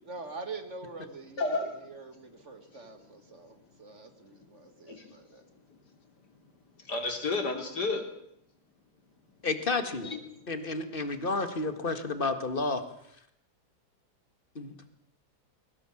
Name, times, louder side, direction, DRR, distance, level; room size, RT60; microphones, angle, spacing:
voice 1, 0.0-5.5, right 3 dB, 45° right, 8 dB, 2.2 m, -45 dB
voice 2, 1.4-1.8 4.9-5.2 5.7-5.8 6.7-8.1 10.0-10.5, left 3 dB, 80° left, 5 dB, 3.4 m, -32 dB
voice 3, 9.4-10.1 10.5-12.8 14.6-14.7, left 3 dB, 35° left, 9 dB, 1.9 m, -31 dB
21.5 x 18.5 x 7.3 m, 0.74 s
omnidirectional pair, 1.8 m